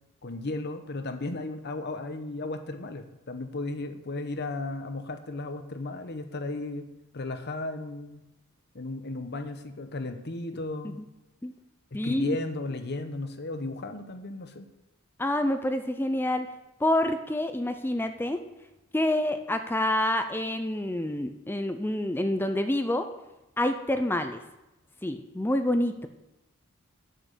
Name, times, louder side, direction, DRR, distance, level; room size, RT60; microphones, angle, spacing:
voice 1, 0.2-6.9 7.1-8.2 8.7-11.1 11.9-14.7, left 2 dB, 50° left, 7 dB, 1.0 m, -35 dB
voice 2, 11.9-12.4 15.2-16.5 16.8-18.4 18.9-23.1 23.6-24.4 25.0-26.1, left 1 dB, 10° left, 8 dB, 0.5 m, -27 dB
8.9 x 8.6 x 6.8 m, 0.97 s
head